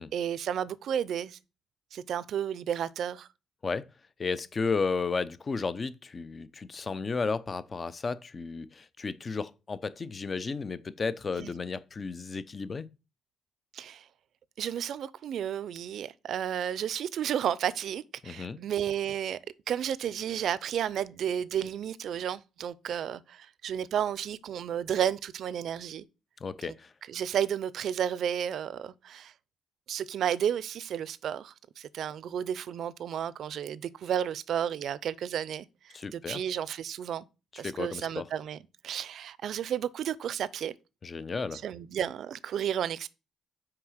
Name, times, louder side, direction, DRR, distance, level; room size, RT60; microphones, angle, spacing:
voice 1, 0.1-1.4 1.9-3.3 11.4-11.5 13.7-14.0 14.6-19.4 19.7-26.1 26.6-26.7 27.1-29.3 29.9-37.2 37.6-38.6 38.8-40.7 41.5-43.1, right 9 dB, 70° right, 0.5 m, -32 dB
voice 2, 4.2-12.9 18.2-18.6 26.4-26.9 35.9-36.4 37.6-38.2 41.0-41.6, left 4 dB, 35° left, 0.6 m, -33 dB
5.9 x 4.8 x 6.3 m
cardioid pair, 90°, 0 cm